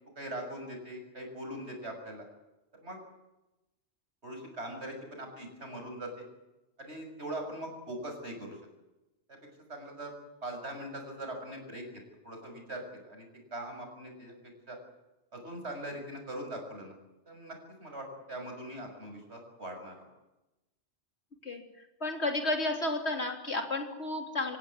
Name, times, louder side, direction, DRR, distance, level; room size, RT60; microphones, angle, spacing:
voice 1, 0.1-2.3 2.8-3.0 4.2-6.3 6.8-8.6 9.7-10.1 10.4-11.8 12.2-13.3 13.5-14.3 14.7-14.8 15.3-16.9 17.2-17.5 17.8-19.9, right 1 dB, 75° right, 3 dB, 6.8 m, -41 dB
voice 2, 22.0-24.6, left 2 dB, 70° left, 4 dB, 3.7 m, -32 dB
27.0 x 16.5 x 9.7 m, 1.0 s
omnidirectional pair, 1.1 m